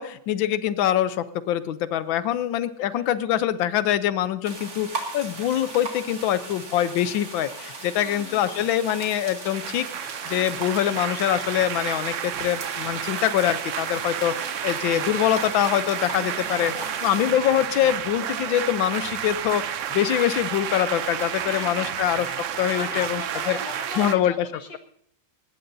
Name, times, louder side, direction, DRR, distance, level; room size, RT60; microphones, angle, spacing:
voice 1, 0.0-16.7 17.0-22.3 22.6-23.6 24.0-24.5, left 11 dB, 85° left, 14 dB, 1.5 m, -24 dB
voice 2, 2.8-3.2 8.0-8.7 14.3-14.6 16.5-17.3 21.4-22.0 22.5-24.8, left 4 dB, 70° left, 5 dB, 2.2 m, -40 dB
sound 1, 4.4-17.3, right 3 dB, 55° right, 2.6 m, -38 dB
sound 2, 9.5-24.2, right 10 dB, 75° right, 0.6 m, -31 dB
20.5 x 17.5 x 2.7 m, 0.68 s
omnidirectional pair, 2.1 m